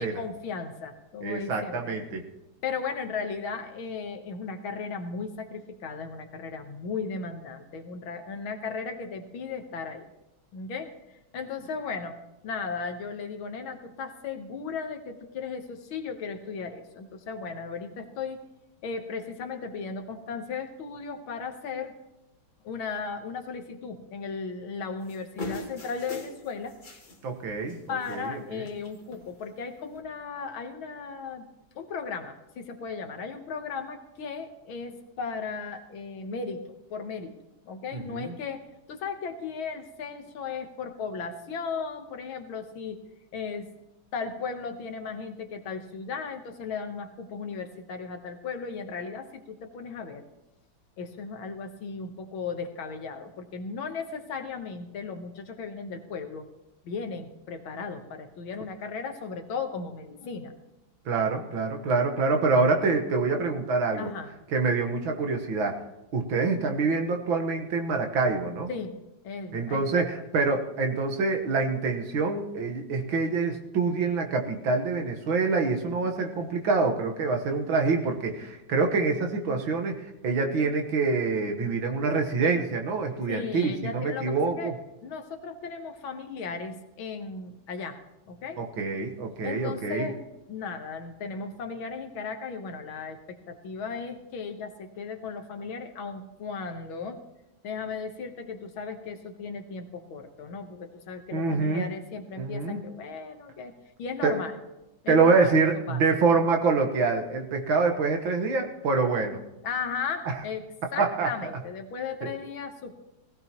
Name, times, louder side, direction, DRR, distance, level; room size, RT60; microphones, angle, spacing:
voice 1, 0.0-2.1 2.6-10.1 10.5-10.9 11.3-12.2 12.4-18.4 18.8-21.9 22.6-26.8 27.9-31.4 31.8-37.3 37.6-43.0 43.3-43.7 44.1-50.3 51.0-56.5 56.8-60.5 64.0-64.3 68.7-68.9 69.2-70.1 83.2-84.7 85.0-88.0 88.3-88.6 89.4-90.2 90.5-97.2 97.6-103.7 104.0-104.6 105.0-106.0 109.6-110.6 110.9-112.9, left 5 dB, 70° left, 6 dB, 1.9 m, -36 dB
voice 2, 1.2-2.2 27.2-28.7 37.9-38.3 61.1-64.1 64.5-65.8 66.1-68.7 69.5-84.7 88.6-90.1 101.3-101.9 102.4-102.8 104.2-104.4 105.1-109.4 110.3-110.4 111.0-111.3 112.2-112.3, right 4 dB, 65° right, 4 dB, 2.0 m, -26 dB
sound 1, 25.1-27.2 27.5-27.7 28.0-28.4 28.6-29.2 29.9-30.0, left 2 dB, 25° left, 1.6 m, -40 dB
19.0 x 15.5 x 3.0 m, 0.95 s
omnidirectional pair, 2.4 m